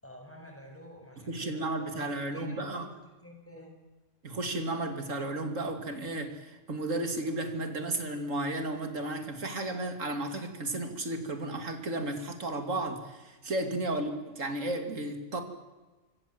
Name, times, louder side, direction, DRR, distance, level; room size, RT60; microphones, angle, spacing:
voice 1, 0.0-2.9 3.2-3.7 13.9-14.1, equal, 10° left, 2 dB, 7.1 m, -50 dB
voice 2, 1.3-2.9 4.2-15.4, right 2 dB, 60° right, 6 dB, 3.1 m, -33 dB
26.0 x 24.0 x 7.9 m, 1.2 s
omnidirectional pair, 1.5 m